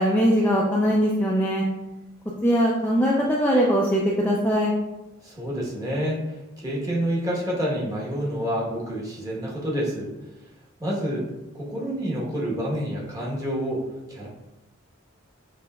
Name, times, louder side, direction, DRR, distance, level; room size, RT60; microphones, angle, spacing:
voice 1, 0.0-1.6 2.4-4.7, equal, 10° left, -4 dB, 0.4 m, -21 dB
voice 2, 5.2-10.1 10.8-11.3 11.5-14.3, equal, 15° right, -4 dB, 1.1 m, -28 dB
6.8 x 3.3 x 2.3 m, 1.0 s
head